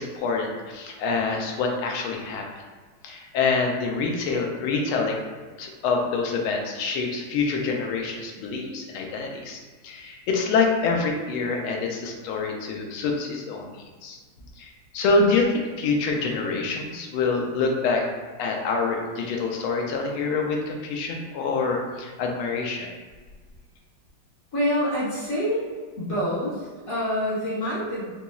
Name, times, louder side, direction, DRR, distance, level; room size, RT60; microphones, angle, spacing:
voice 1, 0.0-2.5 3.0-5.2 5.6-14.2 14.6-18.0 18.4-22.9, left 4 dB, 85° left, 1 dB, 1.5 m, -26 dB
voice 2, 24.5-25.6 25.9-28.1, equal, 45° left, -10 dB, 1.5 m, -26 dB
4.2 x 2.9 x 2.3 m, 1.4 s
omnidirectional pair, 2.3 m